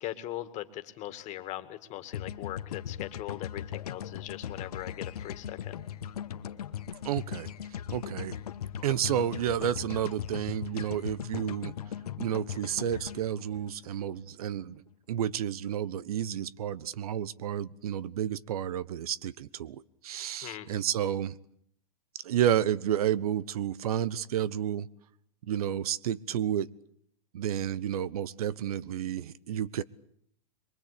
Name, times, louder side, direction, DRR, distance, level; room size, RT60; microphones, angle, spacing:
voice 1, 0.0-5.7 20.4-20.8, left 14 dB, 40° left, 10 dB, 2.3 m, -40 dB
sound 1, 2.1-14.3, left 9 dB, 80° left, 1.3 m, -39 dB
voice 2, 7.0-7.5 7.9-8.4 8.8-11.7 12.2-14.8 15.1-21.4 22.2-24.9 25.4-26.7 27.3-29.8, right 10 dB, 75° right, 20 dB, 1.0 m, -31 dB
23.5 x 23.0 x 8.5 m, 0.68 s
hypercardioid pair, 120°, 19 cm